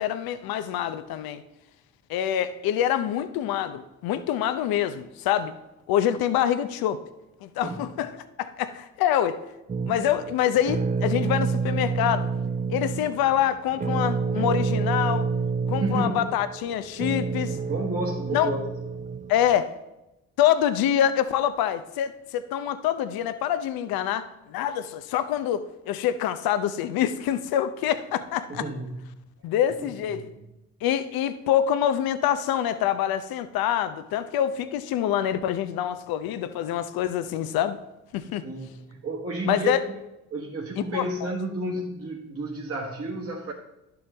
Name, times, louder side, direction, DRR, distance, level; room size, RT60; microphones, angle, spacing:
voice 1, 0.0-1.4 2.1-5.6 5.9-7.0 7.4-8.1 8.4-9.4 9.9-12.3 12.7-15.3 15.7-17.6 18.3-18.5 19.3-19.7 20.4-28.6 29.4-30.3 30.8-37.8 38.1-38.4 39.5-39.8 40.8-41.3, left 10 dB, 75° left, 12 dB, 0.6 m, -25 dB
sound 1, 9.7-19.6, right 5 dB, 20° right, 0.5 m, -28 dB
voice 2, 15.8-16.3 17.7-18.6 28.5-29.0 29.8-29.9 30.1-30.3 38.4-39.8 40.3-43.5, right 2 dB, 40° right, -2 dB, 1.4 m, -31 dB
11.0 x 7.1 x 3.4 m, 0.95 s
supercardioid pair, 60°, 36 cm